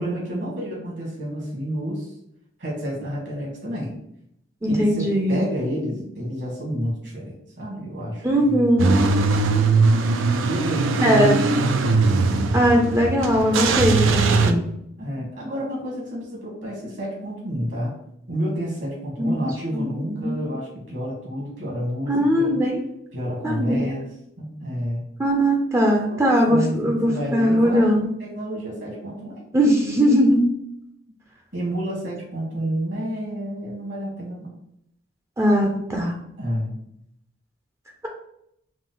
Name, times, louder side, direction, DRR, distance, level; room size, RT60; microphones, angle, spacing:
voice 1, 0.0-2.1 2.6-4.0 4.6-8.7 10.4-13.3 15.0-17.9 18.3-22.6 23.1-24.0 24.4-25.1 26.1-27.9 28.2-29.4 31.5-34.5 36.4-36.8, equal, 60° right, -3 dB, 1.6 m, -30 dB
voice 2, 4.6-5.4 8.2-8.9 11.0-11.4 12.5-14.6 19.2-19.4 19.7-20.5 22.1-22.8 23.4-23.8 25.2-28.1 29.5-30.5 35.4-36.1, equal, 15° right, 0 dB, 0.5 m, -20 dB
Car / Engine starting / Idling, 8.8-14.5, right 4 dB, 80° right, 0.4 m, -20 dB
5.0 x 2.0 x 3.7 m, 0.76 s
head